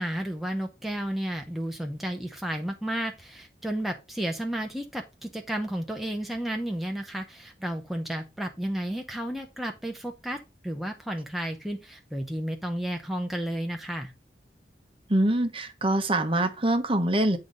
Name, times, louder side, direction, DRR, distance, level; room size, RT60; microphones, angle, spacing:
voice 1, 0.0-14.1, right 1 dB, ahead, 0.7 m, -32 dB
voice 2, 15.1-17.4, right 1 dB, 30° right, 1.0 m, -24 dB
9.0 x 3.8 x 5.2 m
head